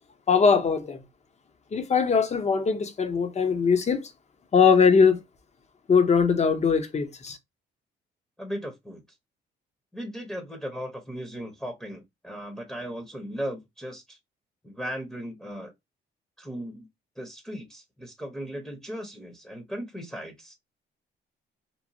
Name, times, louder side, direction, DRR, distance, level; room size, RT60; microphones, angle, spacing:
voice 1, 0.3-1.0 1.7-4.1 4.5-5.2 5.9-7.4, left 5 dB, 35° left, 0.7 m, -21 dB
voice 2, 8.4-9.0 9.9-14.2 14.6-15.7 16.4-16.9 17.2-20.5, equal, 5° left, 0.8 m, -37 dB
3.0 x 2.1 x 2.6 m
cardioid pair, 90°, 20 cm